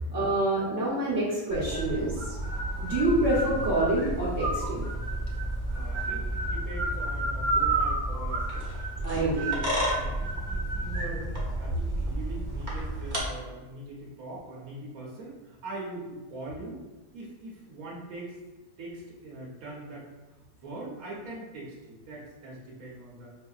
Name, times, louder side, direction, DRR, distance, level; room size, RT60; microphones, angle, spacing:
voice 1, 0.1-2.4 2.8-4.9 9.0-9.6, right 1 dB, 65° right, -7 dB, 1.2 m, -27 dB
sound 1, 1.5-13.2, right 2 dB, 35° right, 0.9 m, -30 dB
voice 2, 5.7-8.7 9.1-9.5 9.9-16.8 17.1-18.4 18.8-23.4, right 2 dB, 85° right, -4 dB, 1.3 m, -42 dB
5.0 x 2.7 x 2.3 m, 1.2 s
omnidirectional pair, 1.4 m